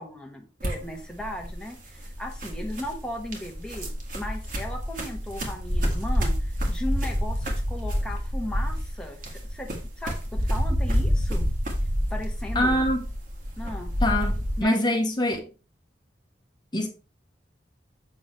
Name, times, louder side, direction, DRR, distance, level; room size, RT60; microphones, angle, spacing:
voice 1, 0.0-3.9 4.1-9.7 10.0-11.5 12.1-12.8 13.6-13.9 14.6-14.8, left 1 dB, 5° left, 1.0 m, -36 dB
sound 1, 0.6-14.6, equal, 50° right, 1.9 m, -28 dB
voice 2, 12.5-13.0 14.0-15.4 16.7-16.9, left 1 dB, 25° left, 1.0 m, -24 dB
7.6 x 6.2 x 3.1 m
head